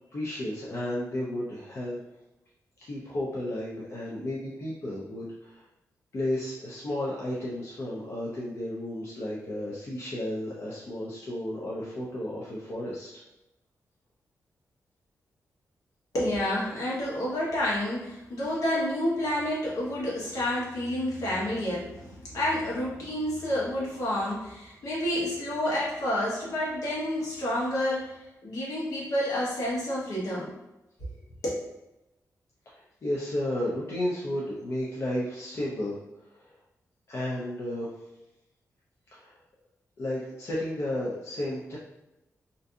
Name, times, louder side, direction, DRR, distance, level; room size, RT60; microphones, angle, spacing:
voice 1, 0.1-2.0 2.8-5.6 6.1-13.1 32.7-36.0 36.3-36.5 37.1-37.9 39.1-39.4 40.0-41.8, left 1 dB, 45° left, -6 dB, 0.5 m, -33 dB
voice 2, 16.1-30.5 31.4-31.6, left 1 dB, 70° left, -6 dB, 1.0 m, -29 dB
2.5 x 2.5 x 2.3 m, 0.93 s
wide cardioid pair, 145°, 6 cm